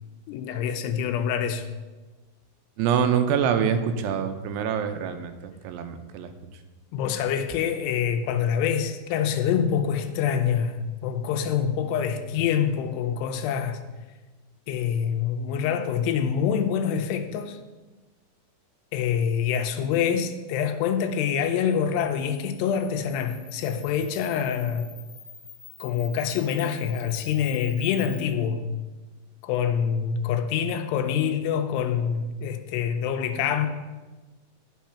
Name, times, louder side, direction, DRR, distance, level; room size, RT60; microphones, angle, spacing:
voice 1, 0.3-1.7 6.9-13.8 14.7-17.6 18.9-24.9 25.8-28.7 29.4-33.7, left 8 dB, 85° left, 7 dB, 2.9 m, -26 dB
voice 2, 2.8-6.3, right 7 dB, 90° right, 8 dB, 2.9 m, -25 dB
Camera, 21.2-28.2, left 7 dB, 60° left, 2.1 m, -47 dB
10.5 x 6.4 x 5.8 m, 1.2 s
omnidirectional pair, 4.8 m